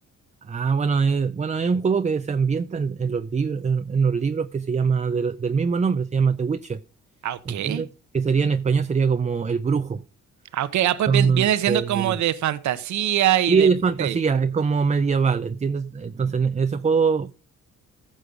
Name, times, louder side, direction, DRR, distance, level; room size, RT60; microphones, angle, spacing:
voice 1, 0.4-6.8 7.5-7.9 8.1-10.0 11.1-12.2 13.5-17.3, right 5 dB, 25° right, 0.6 m, -23 dB
voice 2, 7.2-7.8 10.5-13.7 14.0-14.2, right 12 dB, 70° right, 1.0 m, -23 dB
14.5 x 6.5 x 5.1 m
cardioid pair, 90°, 30 cm